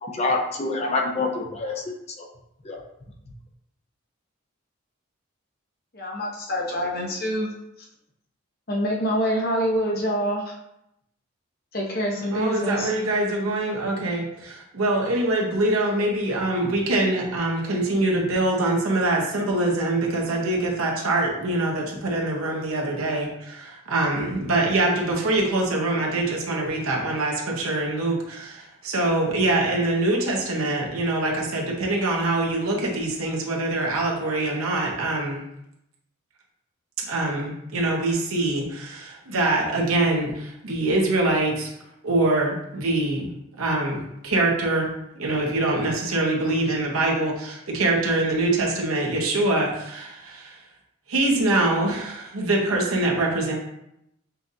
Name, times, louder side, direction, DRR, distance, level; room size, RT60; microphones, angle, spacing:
voice 1, 0.0-1.8 2.2-2.3 2.6-2.8, left 3 dB, 30° left, 1 dB, 0.5 m, -26 dB
voice 2, 5.9-7.5 8.7-10.5 11.7-12.9, equal, 45° left, -2 dB, 0.8 m, -26 dB
voice 3, 12.3-35.4 37.1-41.7 42.0-43.3 43.6-50.6 51.1-53.5, right 2 dB, 90° right, -1 dB, 0.9 m, -24 dB
5.6 x 2.5 x 2.7 m, 0.81 s
head